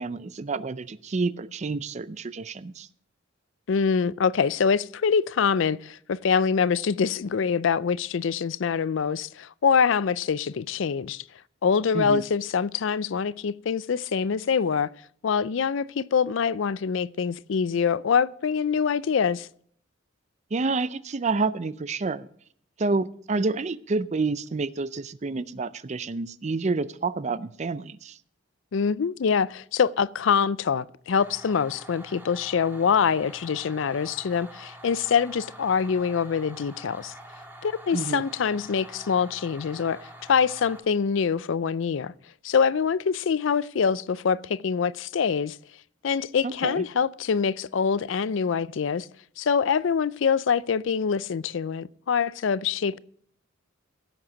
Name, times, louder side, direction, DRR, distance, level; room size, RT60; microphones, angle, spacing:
voice 1, 0.0-2.9 11.9-12.2 20.5-22.3 22.8-28.2 37.9-38.2 46.4-46.8, right 3 dB, 35° right, 0.5 m, -29 dB
voice 2, 3.7-11.2 11.6-14.9 15.2-19.5 28.7-37.1 37.6-42.1 42.4-45.6 46.0-49.1 49.4-53.0, left 6 dB, 65° left, 0.4 m, -25 dB
sound 1, 31.2-40.8, right 1 dB, 10° right, 1.6 m, -46 dB
17.0 x 7.9 x 5.0 m
head